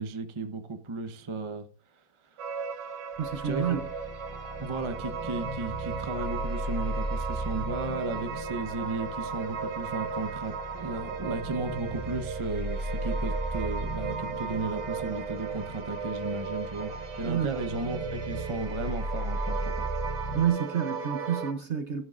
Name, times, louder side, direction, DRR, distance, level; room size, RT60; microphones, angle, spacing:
voice 1, 0.0-1.7 2.3-2.9 3.4-3.8 4.6-16.9 17.2-19.9, right 3 dB, 25° right, 0.7 m, -35 dB
sound 1, 2.4-21.5, right 5 dB, 70° right, 1.7 m, -36 dB
sound 2, 3.2-20.5, right 1 dB, 15° left, 4.5 m, -37 dB
voice 2, 3.2-3.9 17.3-17.5 20.3-22.1, right 8 dB, 50° right, 1.0 m, -29 dB
15.0 x 11.0 x 2.5 m
omnidirectional pair, 2.0 m